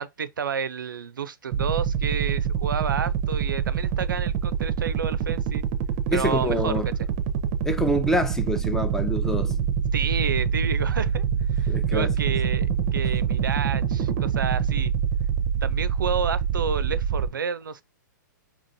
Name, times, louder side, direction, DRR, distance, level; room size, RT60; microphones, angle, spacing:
voice 1, 0.0-5.6 6.1-6.7 9.9-11.2 11.5-14.9 15.6-17.8, right 6 dB, 85° right, 0.4 m, -30 dB
sound 1, 1.5-17.3, right 7 dB, 45° right, 0.6 m, -25 dB
voice 2, 6.1-6.8 7.6-9.6 11.7-12.1, equal, 5° left, 0.5 m, -26 dB
3.9 x 2.9 x 2.6 m
hypercardioid pair, 125°, 11 cm